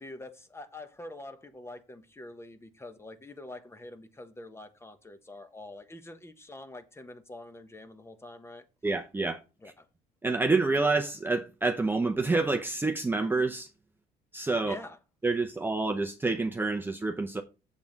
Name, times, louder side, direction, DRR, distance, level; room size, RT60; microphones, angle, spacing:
voice 1, 0.0-8.6 9.6-9.9 14.6-15.0, left 2 dB, 15° left, 1.1 m, -45 dB
voice 2, 8.8-9.4 10.2-13.7 14.3-14.7 15.2-17.4, right 3 dB, 10° right, 0.7 m, -28 dB
7.3 x 7.2 x 4.0 m
cardioid pair, 110°, 17 cm